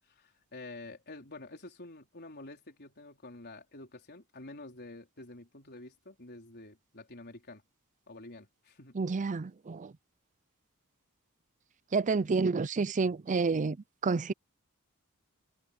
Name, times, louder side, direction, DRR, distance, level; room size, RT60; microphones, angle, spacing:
voice 1, 0.2-7.6 8.1-9.0, left 2 dB, 50° left, 4.6 m, -48 dB
voice 2, 9.0-9.9 11.9-13.8 14.0-14.3, right 4 dB, 35° right, 0.5 m, -29 dB
head